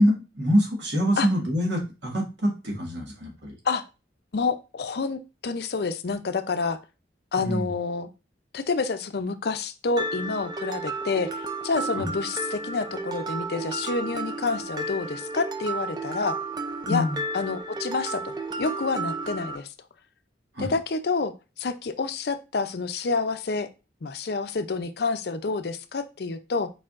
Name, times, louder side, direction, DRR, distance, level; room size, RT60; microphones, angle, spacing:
voice 1, 0.0-3.5 7.4-7.7 12.0-12.1 16.9-17.2 20.5-20.7, equal, 70° right, -1 dB, 1.8 m, -25 dB
voice 2, 4.3-6.8 7.3-8.1 8.5-16.4 16.9-17.0 17.3-19.7 20.6-23.7 24.0-26.7, left 4 dB, 55° left, 10 dB, 0.5 m, -28 dB
Mallet percussion, 10.0-19.6, right 2 dB, 20° right, 0.4 m, -33 dB
4.8 x 4.4 x 2.5 m, 0.28 s
head